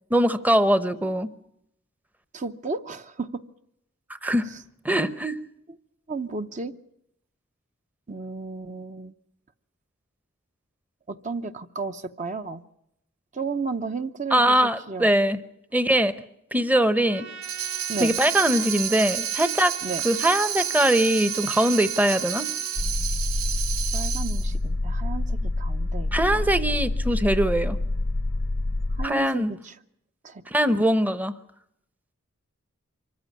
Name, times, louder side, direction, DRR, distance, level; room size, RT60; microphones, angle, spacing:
voice 1, 0.1-1.3 4.2-4.5 4.8-5.4 14.3-15.4 15.7-16.1 16.5-17.3 18.0-19.8 20.0-22.5 26.1-27.8 29.0-29.5 30.5-31.3, right 1 dB, 10° right, 13 dB, 0.8 m, -22 dB
voice 2, 2.3-3.4 4.5-4.6 6.1-6.7 8.1-9.1 11.1-12.6 13.3-14.6 14.9-15.1 17.9-18.2 19.8-20.0 23.9-26.4 29.0-29.7 30.2-30.4, right 4 dB, 35° right, 9 dB, 0.8 m, -33 dB
Trumpet, 17.1-22.8, right 5 dB, 60° right, 3.2 m, -41 dB
Tambourine, 17.4-24.5, right 9 dB, 85° right, 1.8 m, -30 dB
sound 1, 22.8-29.1, left 2 dB, 60° left, 0.8 m, -27 dB
25.0 x 14.5 x 9.6 m, 0.78 s
head